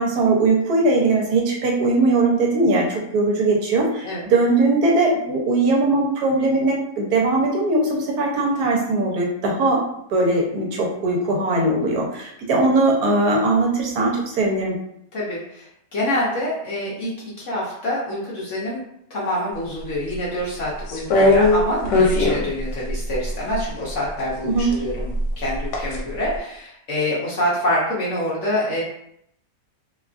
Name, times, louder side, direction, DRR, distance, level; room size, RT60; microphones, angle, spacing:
voice 1, 0.0-9.8 10.1-14.7 24.4-24.7, right 2 dB, 70° right, -1 dB, 1.2 m, -20 dB
voice 2, 15.1-17.1 17.5-18.8 19.1-28.8, left 1 dB, 60° left, -6 dB, 0.9 m, -26 dB
sound 1, 20.9-23.6 24.5-26.0 26.3-26.4, left 2 dB, 80° left, 1.2 m, -19 dB
2.9 x 2.3 x 2.4 m, 0.74 s
omnidirectional pair, 1.8 m